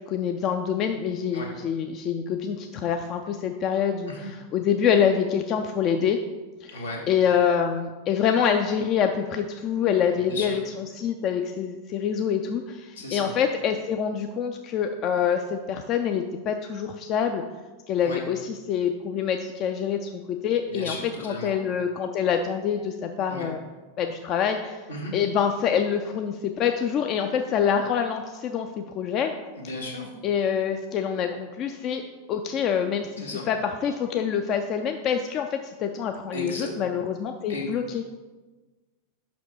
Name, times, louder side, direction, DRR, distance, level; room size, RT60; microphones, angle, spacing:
voice 1, 0.0-6.2 6.6-6.8 7.1-17.4 17.9-23.6 24.0-24.8 25.1-29.3 30.2-32.0 32.3-33.1 33.5-38.0, left 7 dB, 35° left, 5 dB, 0.4 m, -26 dB
voice 2, 6.7-7.0 10.3-10.6 12.9-13.3 18.0-18.2 20.6-21.5 23.3-23.5 24.9-25.1 29.6-30.1 33.2-33.4 36.3-36.7 37.5-37.7, left 2 dB, 75° left, -3 dB, 1.7 m, -35 dB
5.8 x 5.1 x 4.6 m, 1.2 s
figure-of-eight pair, 90°, 0 cm